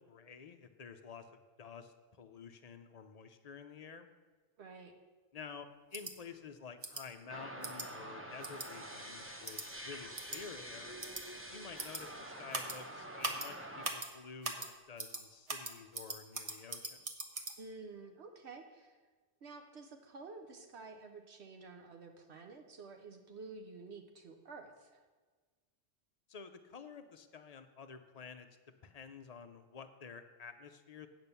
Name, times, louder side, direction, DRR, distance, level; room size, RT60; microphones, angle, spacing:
voice 1, 0.0-4.1 5.3-10.9 11.5-17.1 26.3-28.5 28.8-31.1, left 5 dB, 45° left, 8 dB, 0.6 m, -51 dB
voice 2, 4.6-4.9 17.6-19.0 19.4-25.1, right 4 dB, 75° right, 4 dB, 1.1 m, -51 dB
sound 1, 5.9-6.1 6.8-7.0 7.6-7.9 8.4-8.7 9.4-9.6 10.1-10.4 11.0-11.2 11.8-12.0 12.5-12.8 13.2-13.5 13.8-14.1 14.4-14.7 15.0-15.2 15.5-17.5, right 2 dB, 35° right, 0.9 m, -40 dB
sound 2, 7.3-13.9, right 1 dB, 15° right, 0.6 m, -47 dB
8.8 x 6.0 x 6.8 m, 1.4 s
omnidirectional pair, 1.2 m